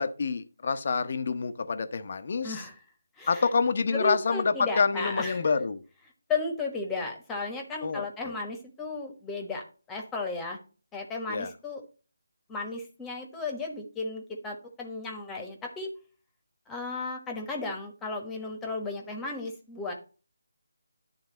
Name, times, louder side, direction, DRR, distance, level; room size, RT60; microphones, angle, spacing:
voice 1, 0.0-2.6 3.3-5.8 7.8-8.4 11.3-11.5, left 5 dB, 50° left, 0.8 m, -27 dB
voice 2, 2.4-2.7 3.2-3.4 3.9-5.4 6.3-9.6 9.9-10.6 10.9-11.8 12.5-15.9 16.7-19.9, left 3 dB, 10° left, 1.2 m, -34 dB
11.0 x 3.9 x 4.0 m
figure-of-eight pair, 155°, 0 cm